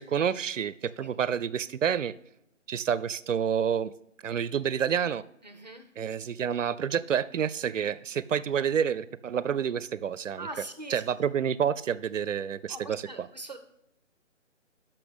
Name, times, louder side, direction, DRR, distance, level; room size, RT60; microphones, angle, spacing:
voice 1, 0.0-2.1 2.7-3.9 4.2-5.2 6.0-10.5 10.9-13.3, right 8 dB, 75° right, 18 dB, 0.6 m, -29 dB
voice 2, 5.4-5.9 10.4-11.0 12.7-13.6, right 2 dB, 35° right, 7 dB, 0.7 m, -42 dB
12.5 x 5.9 x 3.4 m, 0.81 s
hypercardioid pair, 180°, 38 cm